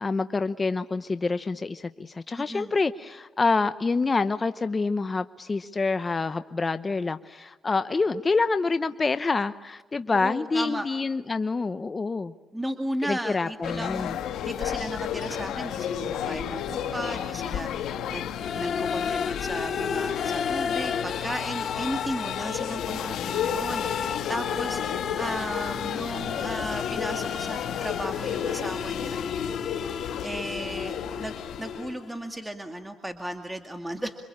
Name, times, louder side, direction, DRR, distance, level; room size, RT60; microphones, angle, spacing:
voice 1, 0.0-12.3 13.0-14.1, left 4 dB, 30° left, 11 dB, 0.8 m, -27 dB
voice 2, 2.4-2.7 10.1-10.9 12.5-29.2 29.8-31.3 31.6-34.2, right 1 dB, 10° right, 6 dB, 2.2 m, -35 dB
sound 1, 13.6-31.9, left 9 dB, 80° left, 2.1 m, -32 dB
sound 2, 18.3-32.2, left 7 dB, 55° left, 1.1 m, -33 dB
27.5 x 25.0 x 8.7 m, 1.2 s
cardioid pair, 90°, 0 cm